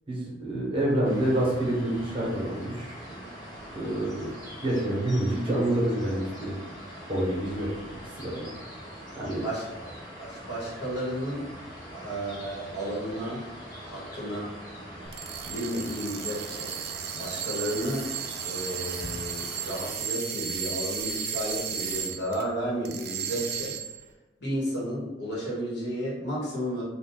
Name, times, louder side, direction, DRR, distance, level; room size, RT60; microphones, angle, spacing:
voice 1, 0.1-3.0 3.7-4.3 4.6-6.5 7.1-7.7 8.2-8.5 9.2-9.4, right 1 dB, 30° right, -4 dB, 0.9 m, -27 dB
sound 1, 1.0-19.9, equal, 20° left, 1.2 m, -43 dB
voice 2, 9.4-11.5 11.9-13.4 13.8-14.5 15.4-16.7 17.1-18.1 18.4-23.8 24.4-26.8, equal, 65° left, -5 dB, 1.1 m, -33 dB
sound 2, 15.0-22.4 22.8-24.0, right 8 dB, 55° right, 0.3 m, -34 dB
2.5 x 2.3 x 3.8 m, 1.1 s
head